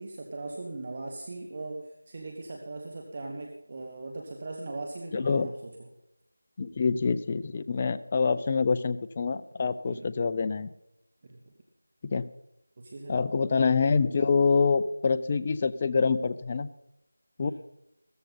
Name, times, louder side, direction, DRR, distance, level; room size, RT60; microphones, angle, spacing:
voice 1, 0.0-5.9 9.9-10.1 11.2-11.5 12.8-13.2 17.4-17.5, right 2 dB, 35° right, 1 dB, 1.4 m, -39 dB
voice 2, 5.1-5.5 6.6-10.7 12.0-12.3 13.1-16.7 17.4-17.5, left 5 dB, 25° left, 13 dB, 0.5 m, -26 dB
16.0 x 13.5 x 4.1 m, 0.86 s
figure-of-eight pair, 165°, 0 cm